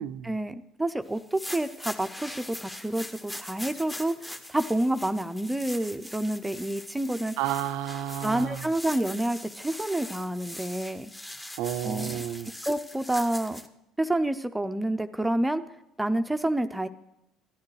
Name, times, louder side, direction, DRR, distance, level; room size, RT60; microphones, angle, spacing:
voice 1, 0.2-7.4 8.2-11.1 11.8-12.2 12.6-13.6 14.0-15.6 16.0-16.9, right 1 dB, 10° right, 0.5 m, -28 dB
sound 1, 1.2-13.7, left 1 dB, 15° left, 1.0 m, -41 dB
voice 2, 7.4-8.6 11.6-12.5, right 11 dB, 75° right, 0.4 m, -31 dB
14.5 x 10.5 x 3.2 m
hypercardioid pair, 70°, 0 cm